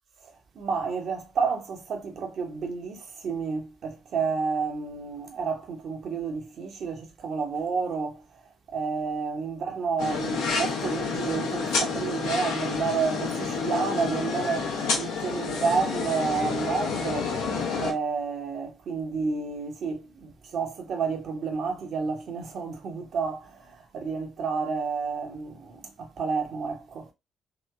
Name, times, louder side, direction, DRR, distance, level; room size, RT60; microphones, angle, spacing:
voice 1, 0.2-8.2 8.7-17.4 17.8-27.1, right 5 dB, 55° right, 0.8 m, -30 dB
sound 1, 10.0-17.9, left 4 dB, 65° left, 0.6 m, -29 dB
3.1 x 2.8 x 2.3 m
figure-of-eight pair, 45°, 0 cm